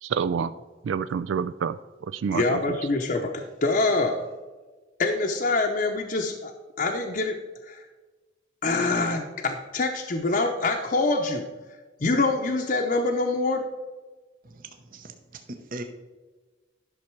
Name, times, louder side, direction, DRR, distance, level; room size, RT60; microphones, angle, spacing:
voice 1, 0.0-0.5 0.8-2.8, right 6 dB, 80° right, 13 dB, 0.3 m, -28 dB
voice 2, 2.3-4.3 5.0-7.4 7.7-7.9 8.6-11.5 12.0-13.7, left 3 dB, 45° left, 2 dB, 0.7 m, -25 dB
voice 3, 14.4-15.8, right 2 dB, 45° right, 5 dB, 0.8 m, -40 dB
11.5 x 6.5 x 4.6 m, 1.3 s
head